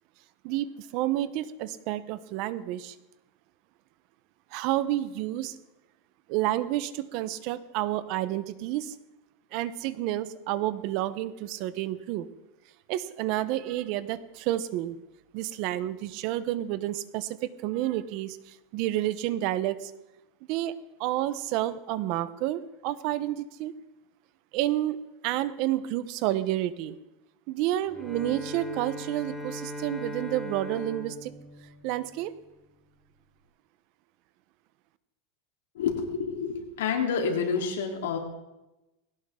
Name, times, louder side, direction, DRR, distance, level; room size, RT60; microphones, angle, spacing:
voice 1, 0.4-2.9 4.5-5.6 6.3-8.9 9.5-12.3 12.9-14.9 15.3-17.4 17.6-19.9 20.5-20.7 21.0-23.7 24.5-25.0 25.2-27.0 27.5-31.3 31.8-32.3, right 14 dB, 45° right, 15 dB, 0.9 m, -30 dB
Bowed string instrument, 27.9-32.5, equal, ahead, 2.3 m, -39 dB
voice 2, 35.7-38.2, left 6 dB, 90° left, 2 dB, 3.5 m, -28 dB
20.0 x 17.5 x 3.8 m, 0.98 s
supercardioid pair, 155°, 0 cm